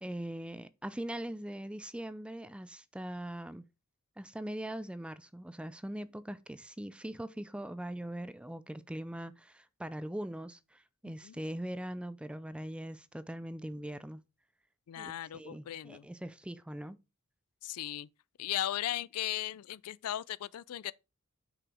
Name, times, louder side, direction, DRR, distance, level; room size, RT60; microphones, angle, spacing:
voice 1, 0.0-3.7 4.2-14.2 15.0-17.0, right 1 dB, 5° right, 0.4 m, -41 dB
voice 2, 14.9-16.1 17.6-18.1 18.4-20.9, left 12 dB, 85° left, 0.4 m, -37 dB
6.1 x 4.9 x 4.9 m
head